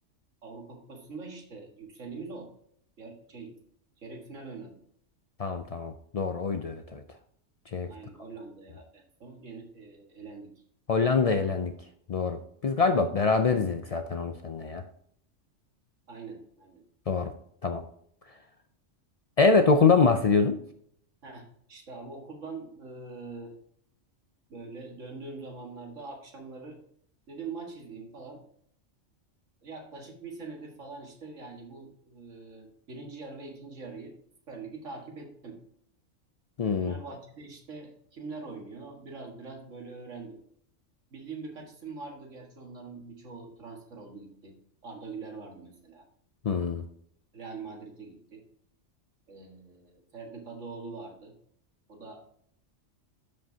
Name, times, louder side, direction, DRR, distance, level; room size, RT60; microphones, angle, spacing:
voice 1, 0.4-2.5 3.0-3.5 4.0-4.8 7.9-10.5 16.1-16.8 21.2-23.5 24.5-26.8 27.3-28.4 29.6-34.1 34.5-35.6 36.8-40.4 41.1-44.6 44.8-46.0 47.3-48.4 49.3-51.3 51.9-52.2, right 4 dB, 80° right, 1 dB, 2.1 m, -43 dB
voice 2, 5.4-7.0 7.7-7.9 10.9-11.7 12.1-14.8 17.1-17.3 17.6-17.8 19.4-20.6 36.6-36.9 46.4-46.8, left 4 dB, 75° left, 7 dB, 0.3 m, -24 dB
13.0 x 5.4 x 2.8 m, 0.65 s
omnidirectional pair, 1.3 m